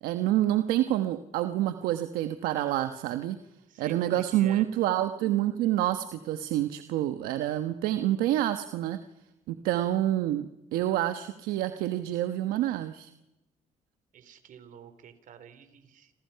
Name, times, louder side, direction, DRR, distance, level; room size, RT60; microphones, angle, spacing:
voice 1, 0.0-3.4 3.8-9.0 9.5-13.1, right 13 dB, 85° right, 8 dB, 1.2 m, -28 dB
voice 2, 3.7-4.6 14.1-16.1, right 8 dB, 65° right, 10 dB, 3.7 m, -47 dB
29.0 x 26.5 x 5.8 m, 0.95 s
supercardioid pair, 80°, 15 cm